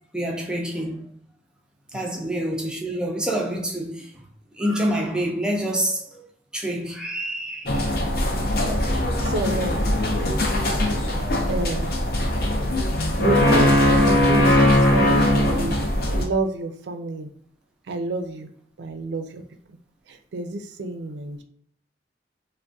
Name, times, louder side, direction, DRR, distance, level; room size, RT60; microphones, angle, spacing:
voice 1, 0.1-1.1 1.9-4.2 4.6-6.3 6.5-7.9 11.2-11.5, right 1 dB, 5° right, 0.4 m, -27 dB
sound 1, 7.7-16.2, left 1 dB, 55° left, 0.5 m, -20 dB
voice 2, 8.8-9.8 11.5-12.0 13.2-15.8 16.1-17.3 17.9-18.5 18.8-19.4 19.7-19.8 20.1-21.4, right 2 dB, 75° right, 0.4 m, -29 dB
3.4 x 2.1 x 2.6 m
head